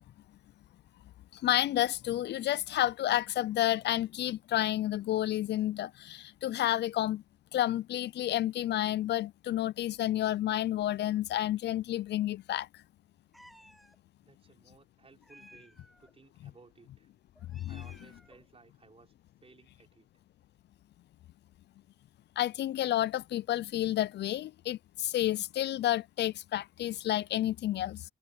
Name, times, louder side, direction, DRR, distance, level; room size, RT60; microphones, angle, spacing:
voice 1, 1.3-7.2 7.5-12.7 17.5-17.8 22.4-28.0, left 13 dB, 60° left, 0.4 m, -30 dB
Meow, 13.3-14.0 15.2-16.1 17.4-18.5, equal, ahead, 4.8 m, -57 dB
voice 2, 14.2-17.1 17.7-20.1, right 4 dB, 30° right, 5.8 m, -60 dB
cardioid pair, 90°, 20 cm